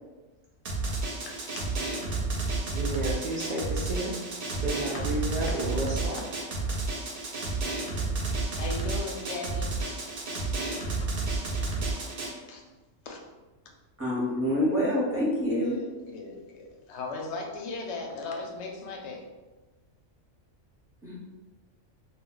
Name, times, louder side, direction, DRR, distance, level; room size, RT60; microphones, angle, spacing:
Drum, 0.6-12.3, right 3 dB, 55° right, 0.7 m, -31 dB
voice 1, 1.3-1.7 4.9-5.1 5.5-5.6 6.2-6.3 7.0-7.1 8.2-10.0 11.6-11.7 12.5-12.6 13.0-13.2 15.5-19.3, left 3 dB, 65° left, 1 dB, 0.8 m, -38 dB
voice 2, 2.7-4.1 4.5-6.2, right 2 dB, 75° right, -5 dB, 0.3 m, -31 dB
voice 3, 14.0-15.8 21.0-21.2, equal, 15° right, -8 dB, 0.7 m, -26 dB
2.2 x 2.1 x 3.7 m, 1.2 s
omnidirectional pair, 1.3 m